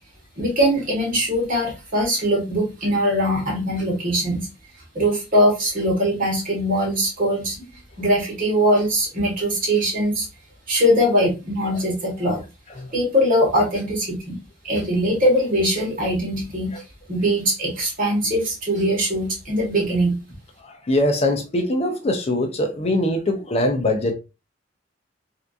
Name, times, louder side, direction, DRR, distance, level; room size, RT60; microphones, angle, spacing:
voice 1, 0.4-4.5 4.9-7.6 8.0-10.3 10.7-12.4 12.9-14.4 14.6-16.8 17.1-20.2, equal, 50° right, 1.6 m, -21 dB
voice 2, 20.6-24.1, left 1 dB, 35° left, 0.5 m, -22 dB
3.4 x 2.7 x 2.4 m
head